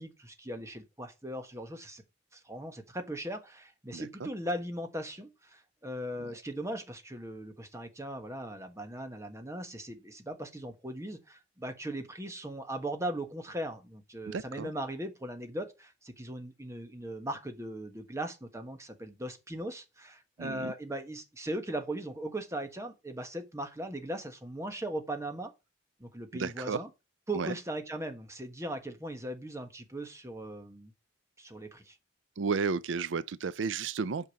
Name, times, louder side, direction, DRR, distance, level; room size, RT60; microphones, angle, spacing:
voice 1, 0.0-2.0 2.3-25.5 26.0-26.9 27.3-30.9 31.4-32.0, right 1 dB, 15° right, 1.4 m, -39 dB
voice 2, 3.9-4.3 6.2-6.4 14.3-14.7 20.4-20.7 26.3-26.8 27.3-27.6 32.4-34.3, right 5 dB, 80° right, 0.5 m, -33 dB
8.2 x 5.3 x 6.4 m
head